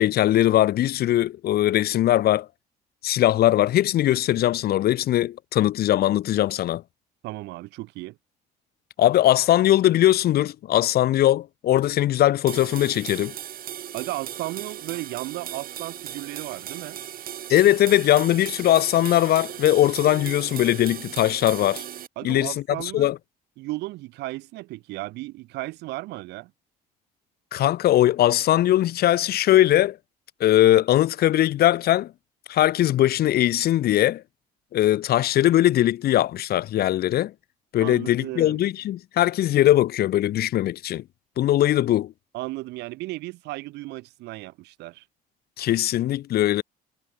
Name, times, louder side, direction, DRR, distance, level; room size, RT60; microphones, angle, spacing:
voice 1, 0.0-2.5 3.0-6.8 9.0-13.3 17.5-21.8 22.2-23.2 27.5-30.0 30.4-32.1 32.5-34.2 34.7-37.3 37.7-41.0 41.4-42.1 45.6-46.6, left 13 dB, 65° left, 2.6 m, -20 dB
voice 2, 7.2-8.2 13.9-17.0 22.2-23.1 23.6-26.5 37.8-38.6 42.3-45.0, right 19 dB, 90° right, 7.8 m, -35 dB
sound 1, 12.5-22.1, right 11 dB, 60° right, 5.5 m, -37 dB
cardioid pair, 110°, 17 cm